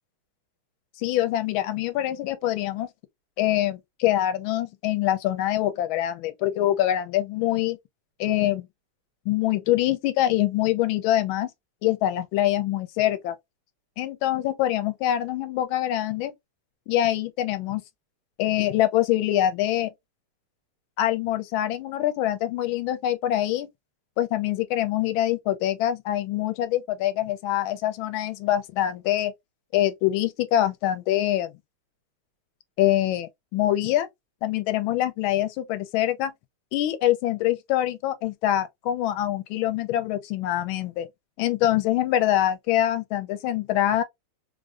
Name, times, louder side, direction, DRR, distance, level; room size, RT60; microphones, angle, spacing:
voice 1, 1.0-2.9 3.4-7.8 8.2-8.7 9.3-11.5 11.8-13.3 14.0-16.3 16.9-17.8 18.4-19.9 21.0-23.7 24.2-29.3 29.7-31.5 32.8-34.1 34.4-36.3 36.7-41.1 41.4-44.0, left 13 dB, 75° left, 1.4 m, -24 dB
3.5 x 2.6 x 2.4 m
omnidirectional pair, 2.4 m